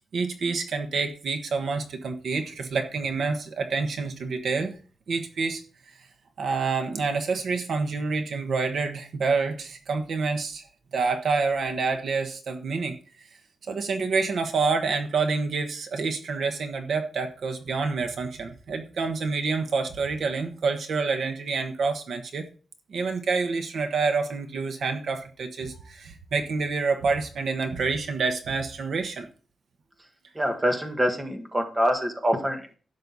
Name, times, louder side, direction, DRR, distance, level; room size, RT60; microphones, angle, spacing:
voice 1, 0.1-4.7 5.1-5.6 6.4-10.6 10.9-12.9 13.7-22.5 22.9-29.3, right 4 dB, 65° right, 6 dB, 1.3 m, -27 dB
voice 2, 30.3-32.8, equal, 15° right, 4 dB, 1.6 m, -25 dB
12.0 x 7.8 x 4.1 m, 0.39 s
wide cardioid pair, 175°, 0 cm